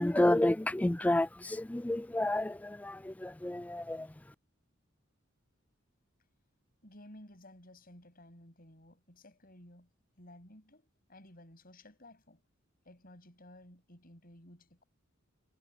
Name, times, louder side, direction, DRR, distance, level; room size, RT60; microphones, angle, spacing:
voice 1, 0.0-4.1, left 1 dB, 10° left, 0.3 m, -30 dB
voice 2, 6.8-9.9 10.2-12.4 12.8-14.8, left 1 dB, 45° left, 7.5 m, -55 dB
head